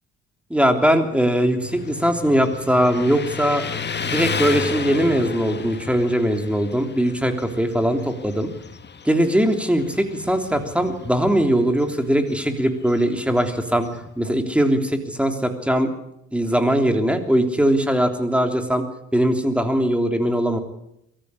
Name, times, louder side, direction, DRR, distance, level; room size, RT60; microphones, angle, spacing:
voice 1, 0.5-3.6 4.0-8.5 9.0-13.9 14.2-15.9 16.3-18.8 19.1-20.6, equal, 5° right, 6 dB, 3.3 m, -20 dB
Motorcycle, 1.6-14.2, left 5 dB, 35° left, 1.7 m, -33 dB
23.5 x 14.5 x 9.8 m, 0.80 s
cardioid pair, 90°, 30 cm